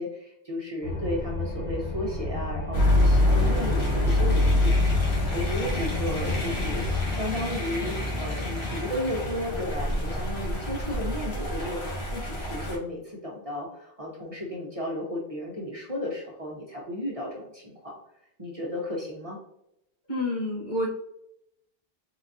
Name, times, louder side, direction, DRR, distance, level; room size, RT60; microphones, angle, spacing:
voice 1, 0.0-6.9 7.1-17.9 18.4-19.4, left 1 dB, 35° right, -3 dB, 1.1 m, -34 dB
sound 1, 0.8-7.1, left 2 dB, 20° left, 0.8 m, -32 dB
sound 2, 2.7-12.8, left 1 dB, 75° left, 1.6 m, -26 dB
voice 2, 20.1-20.9, left 1 dB, 45° left, -6 dB, 1.7 m, -28 dB
4.0 x 3.9 x 2.7 m, 0.81 s
omnidirectional pair, 1.1 m